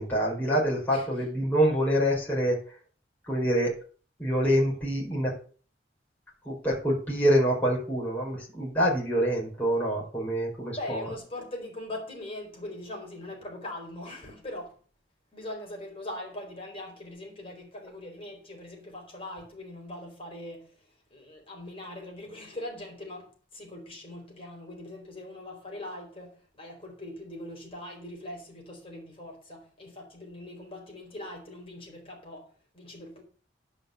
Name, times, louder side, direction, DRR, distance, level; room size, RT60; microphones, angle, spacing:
voice 1, 0.0-2.8 3.3-3.7 4.2-5.3 6.4-11.1, equal, 10° left, 4.8 m, -26 dB
voice 2, 10.7-14.7 15.3-33.2, left 1 dB, 30° left, 4.4 m, -41 dB
10.5 x 5.7 x 6.7 m
head